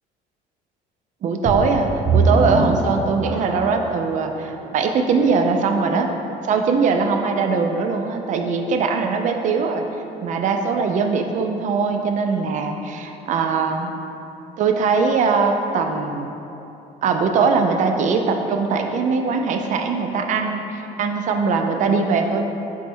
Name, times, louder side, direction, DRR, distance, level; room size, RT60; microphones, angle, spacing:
voice 1, 1.2-6.1 6.5-9.9 10.2-14.0 14.6-16.3 17.0-22.5, right 4 dB, 50° right, 4 dB, 0.4 m, -21 dB
sound 1, 1.4-3.9 4.5-4.6 5.2-5.3, right 3 dB, 30° right, 0.8 m, -21 dB
4.3 x 2.1 x 4.4 m, 2.9 s
cardioid pair, 110°, 17 cm